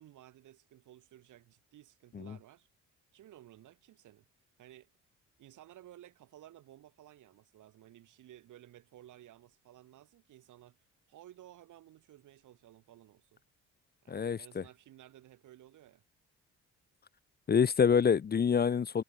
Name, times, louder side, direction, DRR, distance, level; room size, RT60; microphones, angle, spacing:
voice 1, 0.0-2.7 3.1-4.2 4.6-4.9 5.4-10.8 11.1-13.4 14.0-16.0, right 13 dB, 80° right, 5.6 m, -56 dB
voice 2, 14.1-14.6 17.5-19.0, left 6 dB, 30° left, 0.7 m, -27 dB
cardioid pair, 90°, 30 cm